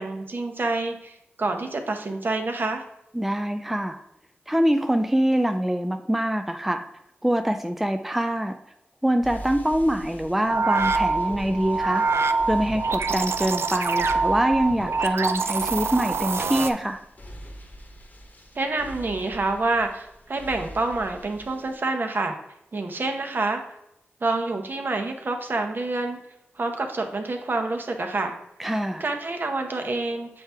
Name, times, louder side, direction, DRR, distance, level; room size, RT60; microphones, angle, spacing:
voice 1, 0.0-2.8 18.5-22.4 22.7-23.6 24.2-26.2 26.6-28.4 29.0-30.4, right 2 dB, 50° right, 4 dB, 0.9 m, -27 dB
voice 2, 3.1-4.0 4.5-6.9 7.2-8.6 9.0-12.0 12.5-17.0 28.6-29.0, right 1 dB, 5° right, 7 dB, 0.3 m, -24 dB
sound 1, 9.2-21.7, equal, 40° left, 1.0 m, -42 dB
sound 2, 10.5-16.7, right 4 dB, 75° right, 0.4 m, -25 dB
7.4 x 4.4 x 3.4 m, 0.84 s
wide cardioid pair, 90°, 4 cm